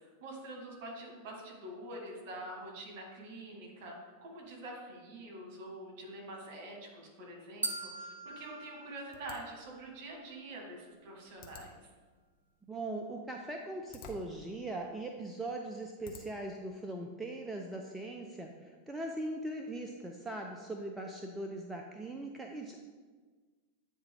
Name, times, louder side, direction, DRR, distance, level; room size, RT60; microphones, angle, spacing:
voice 1, 0.0-11.9, right 1 dB, 45° right, -1 dB, 1.8 m, -46 dB
sound 1, 7.6-9.9, right 2 dB, 70° right, 0.7 m, -41 dB
mouse click, 9.1-16.6, left 3 dB, 40° left, 0.8 m, -57 dB
voice 2, 12.7-22.7, right 2 dB, 10° right, 1 dB, 0.5 m, -40 dB
8.7 x 3.3 x 3.6 m, 1.4 s
figure-of-eight pair, 90°, 0 cm